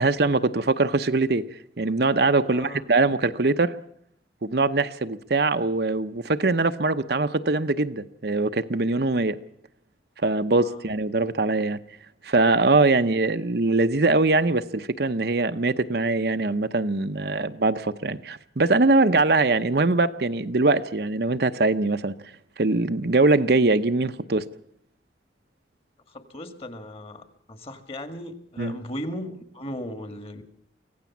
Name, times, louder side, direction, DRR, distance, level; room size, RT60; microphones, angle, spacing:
voice 1, 0.0-1.5 1.8-3.7 4.4-9.4 10.2-11.8 12.2-22.1 22.6-24.4 28.6-28.8, right 3 dB, 55° right, 0.8 m, -22 dB
voice 2, 2.5-2.8 10.6-10.9 13.0-13.1 26.1-27.2 27.5-30.4, left 1 dB, 30° left, 1.9 m, -37 dB
24.5 x 16.5 x 7.3 m
head